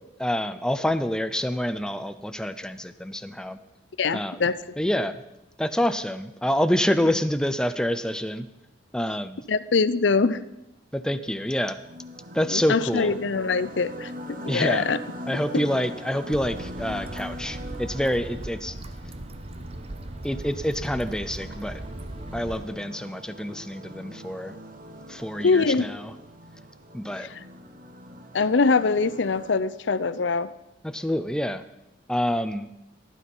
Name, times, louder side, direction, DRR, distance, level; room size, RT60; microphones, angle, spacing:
voice 1, 0.2-3.6 4.1-4.4 4.8-5.2 5.6-8.5 8.9-9.5 10.9-11.8 12.3-13.1 14.5-14.9 15.3-18.8 20.2-21.8 22.3-24.5 25.1-26.1 26.9-27.3 30.8-31.6 32.1-32.7, equal, 5° left, 11 dB, 0.6 m, -27 dB
voice 2, 4.0-4.6 9.5-10.4 12.5-15.0 15.5-15.6 25.4-25.8 28.3-30.5, left 4 dB, 75° left, 14 dB, 0.6 m, -23 dB
sound 1, 11.4-29.6, equal, 50° right, 1.3 m, -41 dB
sound 2, 16.3-22.7, right 1 dB, 35° right, 0.9 m, -38 dB
16.0 x 11.0 x 5.5 m, 0.91 s
head